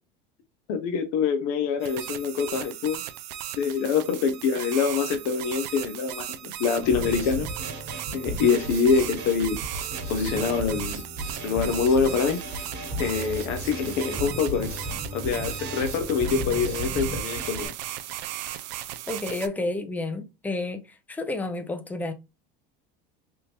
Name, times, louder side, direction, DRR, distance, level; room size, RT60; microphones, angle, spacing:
voice 1, 0.7-3.0 3.5-7.5 8.1-9.6 10.1-11.0 11.4-12.4 13.0-14.7 15.1-17.7, left 6 dB, 65° left, 0.7 m, -25 dB
sound 1, 1.8-19.5, right 13 dB, 75° right, 0.4 m, -37 dB
Drum kit, 6.8-17.7, right 1 dB, 50° right, 1.6 m, -34 dB
voice 2, 19.1-20.8 21.1-22.1, left 2 dB, 10° left, 0.5 m, -30 dB
3.5 x 2.7 x 2.8 m
supercardioid pair, 100°, 21 cm